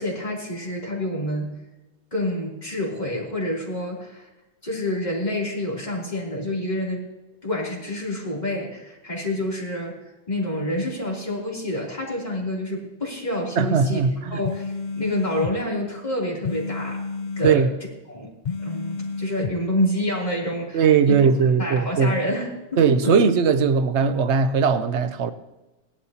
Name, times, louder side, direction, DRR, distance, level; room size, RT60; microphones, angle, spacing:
voice 1, 0.0-1.5 2.1-4.3 4.6-7.0 7.4-10.0 10.3-14.0 14.3-17.0 17.4-17.7 18.1-18.3 18.6-23.1, left 1 dB, 40° left, 3.3 m, -28 dB
voice 2, 13.6-14.4 17.4-17.7 20.7-22.1 22.8-25.3, right 6 dB, 80° right, 1.0 m, -19 dB
sound 1, 14.4-15.5 16.4-17.6 18.4-19.6, left 4 dB, 60° left, 0.5 m, -30 dB
17.0 x 12.0 x 2.8 m
omnidirectional pair, 1.1 m